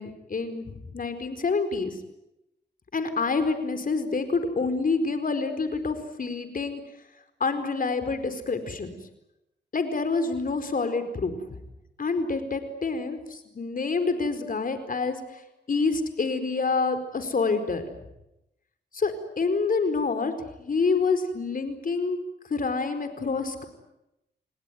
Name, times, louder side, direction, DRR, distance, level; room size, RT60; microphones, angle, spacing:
voice 1, 0.0-2.0 2.9-6.8 7.4-9.0 9.7-11.4 12.0-15.4 15.7-17.8 18.9-20.3 20.6-22.2 22.5-23.6, left 4 dB, 50° left, 8 dB, 4.5 m, -27 dB
28.5 x 19.5 x 9.4 m, 0.89 s
cardioid pair, 80°, 19 cm